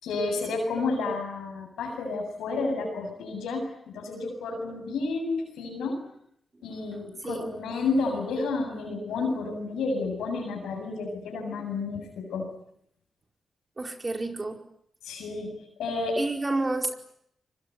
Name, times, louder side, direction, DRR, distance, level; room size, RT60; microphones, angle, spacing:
voice 1, 0.0-3.7 3.9-6.0 6.6-12.5 15.0-15.5 15.8-16.2, left 3 dB, 90° left, 3 dB, 7.8 m, -30 dB
voice 2, 6.6-7.7 13.8-14.6 16.2-17.0, right 2 dB, 35° right, 4 dB, 4.8 m, -31 dB
25.0 x 22.5 x 9.6 m, 0.73 s
supercardioid pair, 45°, 0 cm